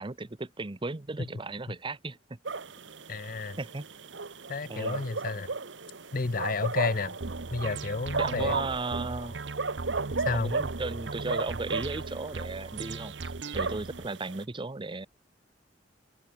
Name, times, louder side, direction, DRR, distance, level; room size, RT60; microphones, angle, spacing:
voice 1, 0.0-2.4 3.6-3.9 4.7-5.0 8.2-9.3 10.3-15.1, right 3 dB, 30° right, 0.8 m, -35 dB
sound 1, 2.4-14.4, right 4 dB, 85° right, 1.4 m, -36 dB
voice 2, 3.1-3.6 4.5-5.5 6.1-7.2 7.5-8.6 10.2-10.5, left 3 dB, 50° left, 0.8 m, -31 dB
sound 2, 7.2-14.1, right 3 dB, 70° right, 0.9 m, -38 dB
head